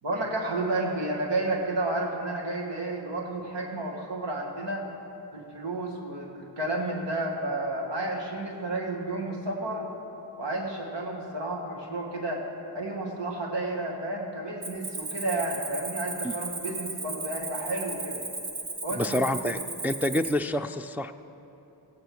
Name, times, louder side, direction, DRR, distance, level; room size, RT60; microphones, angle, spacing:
voice 1, 0.0-4.9 5.3-9.9 10.4-12.5 12.7-18.2 18.8-19.5, right 2 dB, 90° right, 0 dB, 1.6 m, -31 dB
Cricket, 14.6-20.3, right 3 dB, 65° right, 1.5 m, -36 dB
voice 2, 19.0-19.6 19.8-21.1, left 1 dB, 5° right, 6 dB, 0.3 m, -27 dB
16.5 x 9.0 x 4.6 m, 2.9 s
cardioid pair, 45°, 42 cm